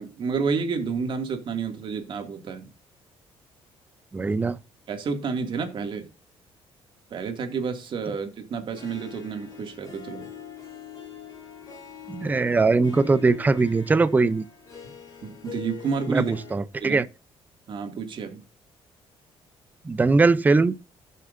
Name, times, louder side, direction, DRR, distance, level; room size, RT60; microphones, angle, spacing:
voice 1, 0.0-2.7 4.9-6.1 7.1-10.3 15.2-16.3 16.8-17.0 17.7-18.4, right 5 dB, 50° right, 2.3 m, -30 dB
voice 2, 4.1-4.6 12.1-14.4 16.1-17.1 19.8-20.8, right 3 dB, 15° right, 0.5 m, -21 dB
Harp, 8.7-16.6, left 7 dB, 35° left, 5.8 m, -43 dB
16.5 x 6.5 x 2.6 m
cardioid pair, 125°, 11 cm